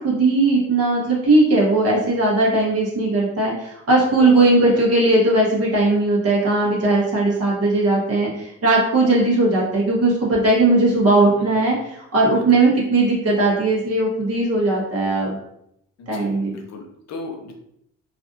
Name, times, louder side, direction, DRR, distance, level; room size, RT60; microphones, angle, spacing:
voice 1, 0.0-15.4 16.1-16.5, right 2 dB, 55° right, -3 dB, 1.4 m, -18 dB
voice 2, 4.0-4.8 11.4-11.6 12.3-12.4 16.0-17.5, left 3 dB, 60° left, 2 dB, 0.7 m, -36 dB
3.3 x 2.5 x 2.6 m, 0.75 s
cardioid pair, 90°, 30 cm